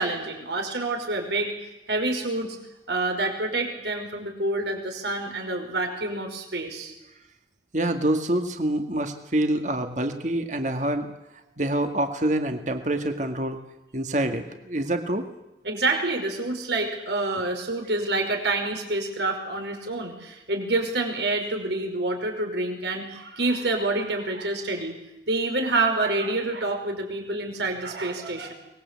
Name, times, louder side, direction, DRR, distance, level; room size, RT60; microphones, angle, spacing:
voice 1, 0.0-1.5 1.9-2.6 2.9-6.9 15.6-24.9 25.3-28.5, right 2 dB, 75° right, 3 dB, 5.5 m, -27 dB
voice 2, 7.7-11.1 11.6-13.6 13.9-15.2, right 1 dB, 45° right, 6 dB, 2.0 m, -26 dB
24.0 x 20.5 x 8.4 m, 0.95 s
head